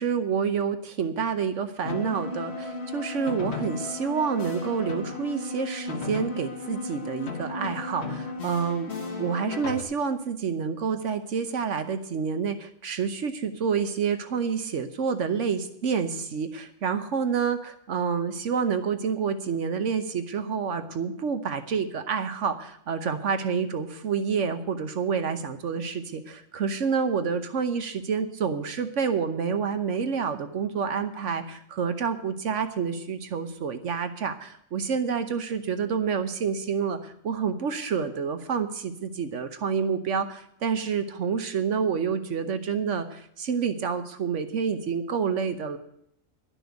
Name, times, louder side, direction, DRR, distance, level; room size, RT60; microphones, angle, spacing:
voice 1, 0.0-8.9 9.2-45.8, right 6 dB, 75° right, 9 dB, 1.2 m, -28 dB
sound 1, 1.8-9.8, left 3 dB, 60° left, 1.6 m, -34 dB
12.0 x 6.1 x 9.2 m, 0.71 s
omnidirectional pair, 1.3 m